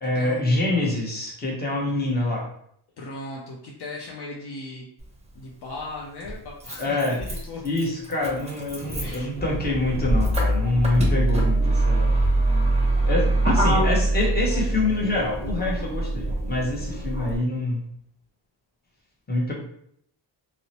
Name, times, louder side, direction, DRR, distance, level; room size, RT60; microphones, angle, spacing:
voice 1, 0.0-2.4 6.8-7.2 7.6-12.2 13.0-17.8 19.3-19.5, left 2 dB, 20° left, -4 dB, 0.9 m, -26 dB
voice 2, 3.0-4.9 5.4-7.6 9.0-9.3, left 2 dB, 55° left, -2 dB, 0.6 m, -37 dB
Motor vehicle (road), 5.0-5.1 6.2-17.4, right 1 dB, 15° right, 0.7 m, -24 dB
2.6 x 2.1 x 2.8 m, 0.70 s
cardioid pair, 85°, 49 cm